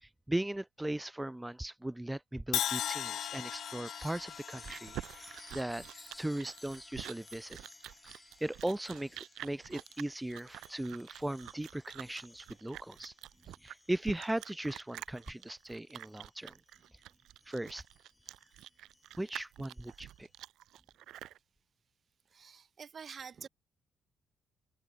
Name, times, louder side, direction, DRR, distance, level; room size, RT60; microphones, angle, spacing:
voice 1, 0.0-5.8 6.2-7.6 8.0-8.1 8.4-13.1 13.6-16.6 17.5-17.8 19.2-20.3, right 1 dB, 10° right, 0.6 m, -38 dB
Crash cymbal, 2.5-6.6, left 10 dB, 70° left, 0.5 m, -38 dB
Chime, 3.0-16.9 17.4-20.2, left 2 dB, 15° left, 1.8 m, -57 dB
Chewing mastication, 4.1-21.4, right 13 dB, 80° right, 1.4 m, -48 dB
voice 2, 22.3-23.5, right 6 dB, 45° right, 2.6 m, -47 dB
open air
cardioid pair, 90°, 0 cm